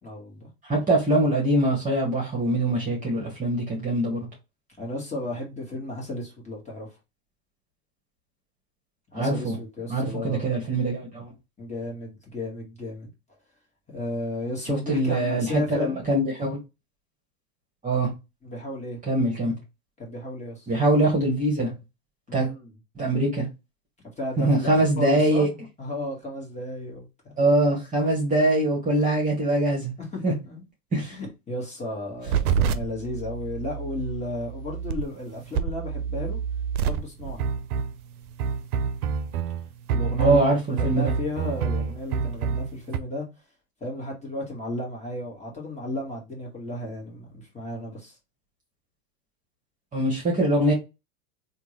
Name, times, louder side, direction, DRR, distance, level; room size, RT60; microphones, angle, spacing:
voice 1, 0.0-0.5 4.8-7.0 9.1-10.5 11.6-13.1 13.9-16.0 18.4-19.0 20.0-20.7 22.3-22.8 24.2-27.3 30.0-30.6 31.0-36.4 36.8-37.4 39.9-40.4 40.7-43.3 43.8-48.2, left 2 dB, 15° left, 1.8 m, -34 dB
voice 2, 0.6-4.3 9.1-9.6 9.9-11.3 14.7-16.6 17.8-18.1 19.1-19.5 20.7-21.7 22.3-22.5 22.9-23.4 24.4-25.5 27.4-29.9 30.2-30.3 30.9-31.2 40.2-41.1 49.9-50.7, right 1 dB, 15° right, 1.4 m, -23 dB
sound 1, 32.3-43.0, right 6 dB, 75° right, 0.6 m, -28 dB
3.5 x 2.6 x 3.2 m
hypercardioid pair, 105°, 45 cm